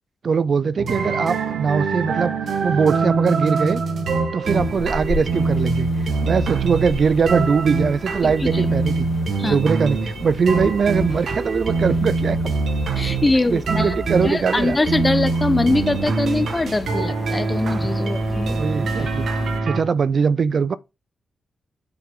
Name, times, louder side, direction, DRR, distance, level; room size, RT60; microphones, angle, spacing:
voice 1, 0.2-2.3 2.6-3.8 4.3-9.1 9.4-12.5 13.5-14.8 18.5-19.3 19.6-20.8, right 5 dB, 60° right, 0.5 m, -21 dB
sound 1, 0.8-19.8, right 3 dB, 75° right, 1.5 m, -24 dB
sound 2, 4.4-19.6, left 2 dB, 55° left, 2.1 m, -34 dB
voice 2, 8.2-8.6 9.4-9.6 13.0-13.9 14.2-18.6, left 2 dB, 25° left, 1.0 m, -22 dB
8.0 x 6.6 x 3.7 m
cardioid pair, 80°, 0 cm